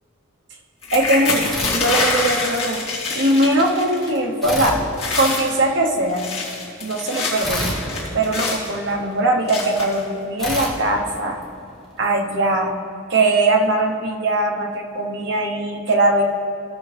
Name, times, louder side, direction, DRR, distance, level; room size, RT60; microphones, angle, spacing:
sound 1, 0.8-4.2 4.4-4.7 4.9-5.5 6.0-8.7 9.5-10.0 10.7-10.8 11.2-11.4, left 3 dB, 30° left, 2.3 m, -25 dB
voice 1, 0.9-2.8 3.1-4.8 5.1-6.2 6.8-7.8 8.1-11.4 12.0-12.7 13.1-16.2, right 2 dB, 60° right, 2 dB, 0.9 m, -20 dB
sound 2, 1.4-2.6 4.4-5.8 7.4-9.1 10.4-11.9, left 1 dB, ahead, 1.2 m, -30 dB
16.0 x 6.3 x 3.4 m, 2.5 s
head